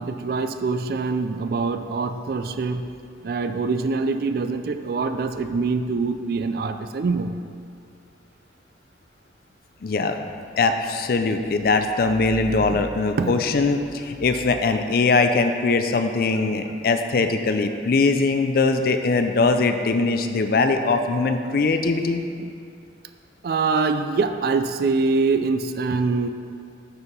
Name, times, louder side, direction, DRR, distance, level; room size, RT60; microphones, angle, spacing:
voice 1, 0.0-2.9 3.2-7.4 12.7-12.8 13.2-13.4 22.4-22.5 23.4-26.3, right 4 dB, 55° right, 9 dB, 0.3 m, -24 dB
voice 2, 9.8-10.2 10.6-22.2, left 3 dB, 50° left, 7 dB, 0.4 m, -21 dB
6.7 x 4.5 x 5.2 m, 2.4 s
head